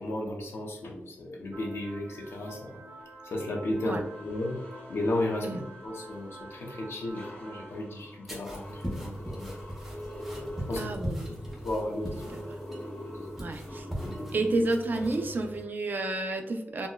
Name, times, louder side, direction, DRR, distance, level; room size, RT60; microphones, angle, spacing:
voice 1, 0.0-2.8 3.2-4.5 4.9-5.5 5.8-9.5 10.7-10.9 11.3-12.2 13.1-13.3 14.0-14.4, left 1 dB, 65° left, 0 dB, 0.7 m, -34 dB
sound 1, 1.5-7.8, right 1 dB, 80° right, 0.9 m, -48 dB
sound 2, 3.0-3.1 3.7-15.7, equal, 35° left, 0.9 m, -45 dB
sound 3, 8.3-15.6, equal, 5° right, 0.7 m, -39 dB
voice 2, 10.8-11.3 13.4-13.9 14.3-16.9, right 2 dB, 45° right, 5 dB, 0.3 m, -30 dB
4.0 x 2.2 x 2.2 m, 0.80 s
wide cardioid pair, 165°, 4 cm